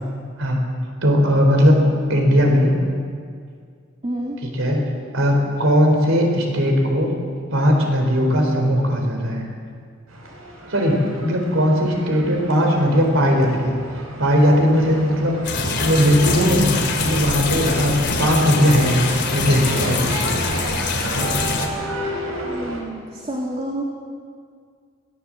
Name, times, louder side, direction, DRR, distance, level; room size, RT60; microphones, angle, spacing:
voice 1, 1.0-1.8 2.1-2.8 4.4-4.8 5.1-7.2 7.5-9.4 10.7-13.8 14.2-16.7 17.0-19.0 19.3-20.1, equal, 70° right, 2 dB, 4.0 m, -18 dB
voice 2, 4.0-4.4 22.5-23.8, right 1 dB, 30° right, -1 dB, 2.1 m, -28 dB
sound 1, 10.1-22.8, right 1 dB, 90° right, 4.6 m, -32 dB
sound 2, 15.4-21.7, left 3 dB, 55° left, 3.0 m, -23 dB
21.5 x 17.5 x 7.6 m, 2.1 s
head